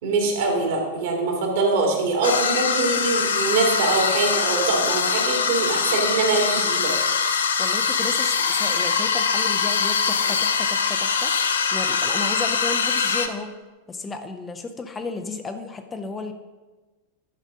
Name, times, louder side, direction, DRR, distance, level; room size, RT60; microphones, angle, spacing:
voice 1, 0.0-6.9, right 3 dB, 55° right, 1 dB, 2.3 m, -23 dB
sound 1, 2.2-13.3, left 5 dB, 70° left, 0.7 m, -23 dB
voice 2, 7.6-11.3 11.7-13.5 13.9-16.3, left 3 dB, 15° left, 6 dB, 0.6 m, -33 dB
11.5 x 5.1 x 5.2 m, 1.2 s
figure-of-eight pair, 90°, 0 cm